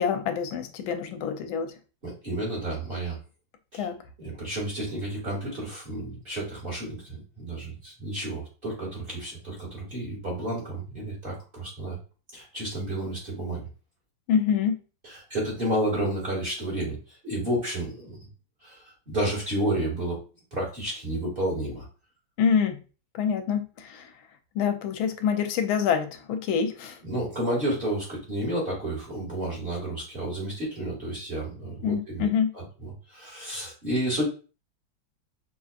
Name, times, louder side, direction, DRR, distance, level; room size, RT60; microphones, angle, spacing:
voice 1, 0.0-1.7 3.8-4.0 14.3-14.8 22.4-22.8 23.1-24.1 24.5-27.0 31.8-32.5, left 7 dB, 90° left, 7 dB, 1.4 m, -26 dB
voice 2, 2.0-3.2 3.7-3.9 4.2-12.0 12.3-13.7 15.0-18.3 18.6-20.2 20.5-21.9 27.0-32.3 32.5-34.2, right 1 dB, 25° right, -4 dB, 2.0 m, -31 dB
5.4 x 2.8 x 2.4 m, 0.34 s
omnidirectional pair, 2.2 m